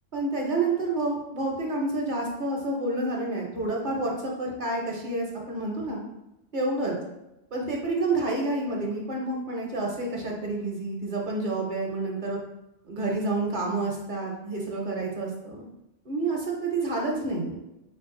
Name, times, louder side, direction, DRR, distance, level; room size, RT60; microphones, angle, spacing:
voice 1, 0.1-6.0 6.5-6.9 7.5-12.4 12.9-15.6 16.0-17.6, right 2 dB, 45° right, -1 dB, 0.8 m, -29 dB
3.7 x 2.6 x 3.6 m, 0.92 s
omnidirectional pair, 1.2 m